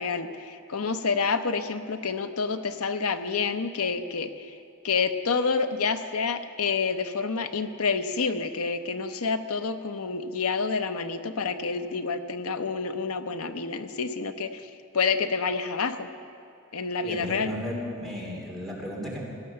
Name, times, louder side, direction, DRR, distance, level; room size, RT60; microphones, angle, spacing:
voice 1, 0.0-4.5 4.8-14.7 14.9-16.1 16.7-17.6, left 5 dB, 85° left, 9 dB, 0.8 m, -28 dB
voice 2, 17.0-19.2, equal, ahead, -4 dB, 3.0 m, -34 dB
17.0 x 11.0 x 6.9 m, 2.6 s
head